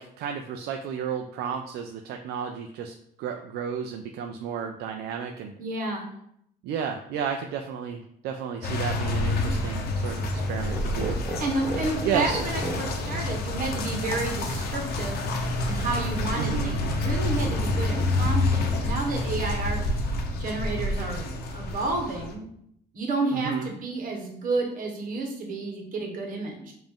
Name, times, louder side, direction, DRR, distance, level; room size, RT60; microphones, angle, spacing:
voice 1, 0.0-5.5 6.6-11.2 12.0-12.4 16.4-16.8 23.3-23.7, right 7 dB, 75° right, 5 dB, 0.4 m, -32 dB
voice 2, 5.6-6.1 11.4-15.2 15.7-19.8 20.4-22.4 22.9-26.7, right 3 dB, 55° right, 2 dB, 1.2 m, -30 dB
sound 1, 8.6-22.3, left 2 dB, 65° left, 0.7 m, -28 dB
sound 2, 10.3-16.6, right 1 dB, ahead, 0.8 m, -39 dB
5.1 x 2.6 x 3.5 m, 0.72 s
cardioid pair, 110°, 17 cm